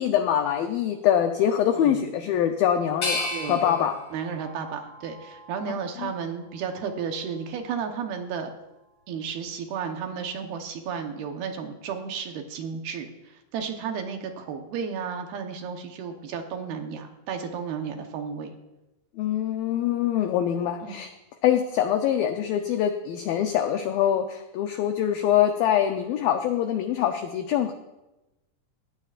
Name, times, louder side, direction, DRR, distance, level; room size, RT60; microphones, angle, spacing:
voice 1, 0.0-4.0 5.7-6.1 19.2-21.1 21.4-27.7, left 10 dB, 90° left, 6 dB, 2.0 m, -24 dB
voice 2, 1.7-2.1 3.3-3.6 4.1-8.5 9.1-18.5 20.8-21.0, right 6 dB, 70° right, 4 dB, 2.8 m, -33 dB
sound 1, 3.0-5.9 6.5-7.3, left 2 dB, 25° left, 3.4 m, -35 dB
19.5 x 16.0 x 2.5 m, 0.99 s
omnidirectional pair, 5.0 m